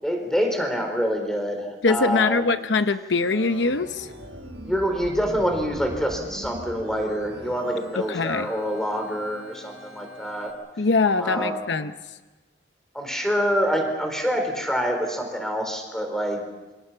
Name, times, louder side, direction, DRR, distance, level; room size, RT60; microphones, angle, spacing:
voice 1, 0.0-2.6 4.6-10.5 11.2-11.7 12.9-16.5, equal, 5° left, 4 dB, 4.2 m, -26 dB
voice 2, 1.8-4.1 7.9-8.5 10.8-11.9, left 3 dB, 70° left, 10 dB, 0.8 m, -22 dB
Organ, 3.1-10.5, equal, 80° right, 6.0 m, -41 dB
27.5 x 25.0 x 5.7 m, 1.2 s
head